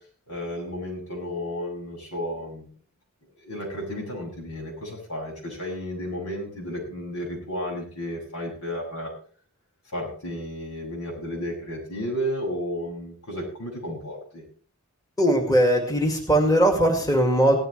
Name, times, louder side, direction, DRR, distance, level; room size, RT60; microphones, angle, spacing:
voice 1, 0.3-2.7 3.4-9.1 9.9-14.4, equal, 90° left, -1 dB, 7.6 m, -33 dB
voice 2, 15.2-17.6, right 1 dB, 15° left, 2 dB, 2.2 m, -20 dB
17.0 x 14.0 x 3.4 m, 0.44 s
head